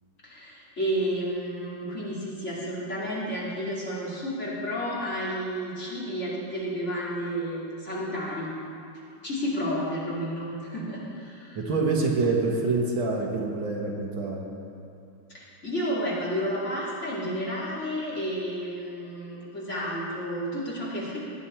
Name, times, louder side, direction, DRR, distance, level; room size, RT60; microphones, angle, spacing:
voice 1, 0.2-8.5 9.2-11.6 15.3-21.2, equal, 35° left, -7 dB, 2.9 m, -31 dB
voice 2, 11.6-14.4, right 3 dB, 70° right, -1 dB, 2.1 m, -26 dB
19.0 x 9.6 x 4.4 m, 2.6 s
omnidirectional pair, 2.3 m